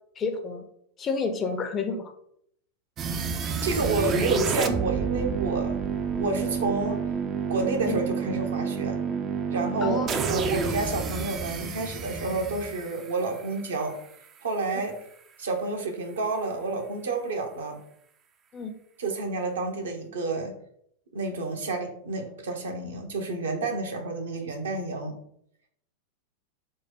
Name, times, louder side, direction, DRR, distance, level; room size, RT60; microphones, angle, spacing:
voice 1, 0.2-0.6 1.0-2.1 7.8-8.0 9.8-10.2 18.5-18.8, left 4 dB, 25° left, 6 dB, 0.6 m, -30 dB
sound 1, 3.0-13.9, right 5 dB, 30° right, 0.4 m, -29 dB
voice 2, 3.6-5.8 6.2-7.0 7.5-9.0 9.5-14.0 14.4-14.9 15.4-17.8 19.0-20.6 21.1-25.2, right 3 dB, 65° right, 2 dB, 0.8 m, -29 dB
4.6 x 2.1 x 4.2 m, 0.70 s
figure-of-eight pair, 90°, 0 cm